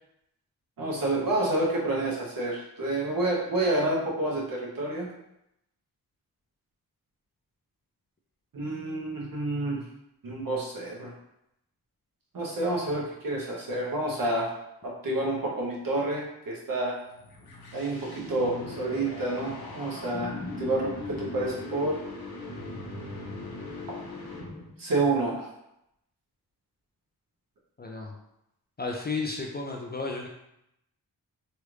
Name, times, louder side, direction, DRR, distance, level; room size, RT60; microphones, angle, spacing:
voice 1, 0.8-5.1 8.5-9.8 10.2-11.1 12.3-14.5 14.8-17.0 17.7-22.0 23.9-24.0 24.8-25.5, right 2 dB, 60° right, -3 dB, 1.0 m, -29 dB
sound 1, 17.0-24.8, left 2 dB, 70° left, 0.9 m, -39 dB
voice 2, 27.8-28.2 28.8-30.3, left 3 dB, 25° left, 0 dB, 0.4 m, -33 dB
3.1 x 2.5 x 3.1 m, 0.83 s
wide cardioid pair, 100°, 38 cm